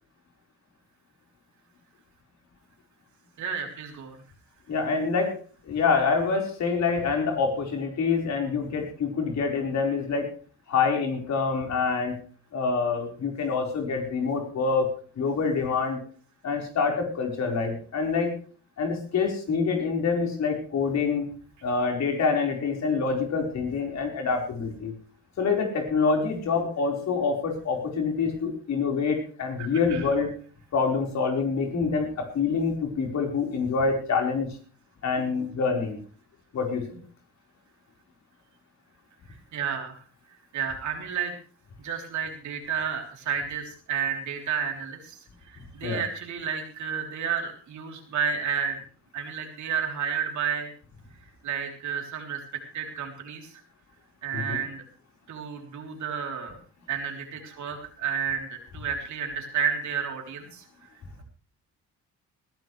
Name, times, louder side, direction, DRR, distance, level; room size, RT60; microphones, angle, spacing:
voice 1, 3.4-4.2 29.6-30.0 39.5-40.0 40.5-41.3 41.8-45.2 45.4-48.8 49.1-50.7 51.4-52.4 52.7-53.5 54.2-54.8 55.3-56.6 56.9-60.6, right 7 dB, 70° right, 2 dB, 3.6 m, -31 dB
voice 2, 4.7-5.3 5.7-10.3 10.7-12.2 12.5-14.9 15.1-16.0 16.4-18.3 18.8-21.3 21.6-24.9 25.4-30.3 30.7-34.5 35.0-36.0 36.5-37.0 45.8-46.0 54.3-54.6, left 5 dB, 65° left, 1 dB, 4.8 m, -26 dB
20.0 x 13.5 x 3.3 m, 0.42 s
cardioid pair, 90°, 30 cm